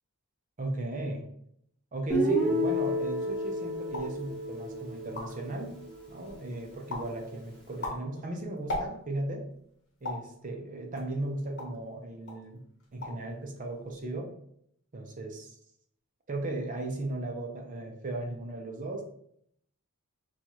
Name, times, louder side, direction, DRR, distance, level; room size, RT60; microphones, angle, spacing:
voice 1, 0.6-1.3 1.9-5.8 6.1-9.5 10.0-12.6 12.9-14.3 14.9-15.6 16.3-19.0, right 2 dB, 35° right, 2 dB, 0.5 m, -36 dB
Guitar, 2.1-6.1, equal, 5° left, 0.8 m, -30 dB
sound 1, 3.9-4.2 4.7-4.8 5.0-5.5 6.0-6.5 6.9-7.2 7.6-9.3 10.0-10.3 11.0-11.9 12.3-12.5 12.8-13.3 13.5-14.0, left 2 dB, 50° left, 0.9 m, -38 dB
4.4 x 2.3 x 2.8 m, 0.69 s
head